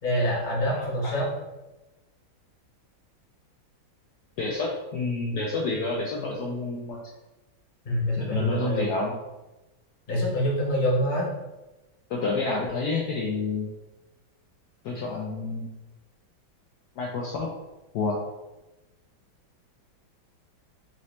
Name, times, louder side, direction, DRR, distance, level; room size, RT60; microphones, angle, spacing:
voice 1, 0.0-1.3 7.8-8.9 10.1-11.3, equal, 30° left, -5 dB, 0.9 m, -25 dB
voice 2, 0.8-1.1 4.4-7.0 8.2-9.1 12.1-13.7 14.8-15.7 17.0-17.5 17.9-18.2, left 3 dB, 75° left, -2 dB, 0.9 m, -29 dB
4.0 x 2.9 x 3.1 m, 1.0 s
omnidirectional pair, 2.2 m